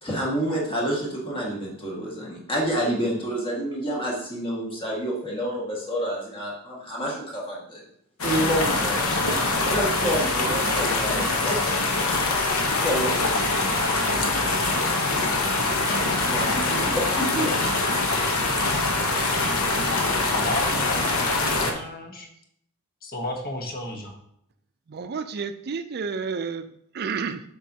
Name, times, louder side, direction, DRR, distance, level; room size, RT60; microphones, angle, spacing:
voice 1, 0.0-7.8 8.2-9.3 9.6-11.7 12.8-13.3 16.1-17.5, right 1 dB, 25° left, -3 dB, 1.8 m, -28 dB
sound 1, 8.2-21.7, left 2 dB, 75° left, 1.0 m, -24 dB
voice 2, 20.3-22.3 23.0-24.1, left 1 dB, 45° left, 2 dB, 1.1 m, -33 dB
voice 3, 24.9-26.7 26.9-27.4, right 5 dB, 45° right, 11 dB, 0.4 m, -30 dB
7.2 x 5.3 x 2.8 m, 0.71 s
head